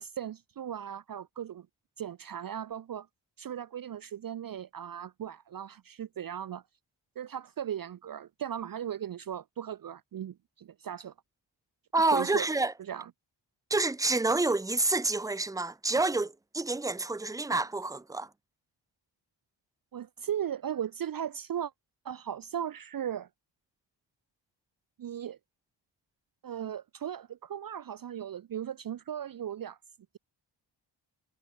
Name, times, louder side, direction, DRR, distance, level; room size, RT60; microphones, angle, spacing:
voice 1, 0.0-1.7 2.0-3.1 3.4-6.6 7.2-11.1 12.0-12.5 12.8-13.1 19.9-21.7 22.0-23.3 25.0-25.4 26.4-29.8, right 9 dB, 50° right, 0.6 m, -37 dB
voice 2, 11.9-12.7 13.7-18.3, right 2 dB, 5° right, 0.8 m, -28 dB
wide cardioid pair, 110°, 46 cm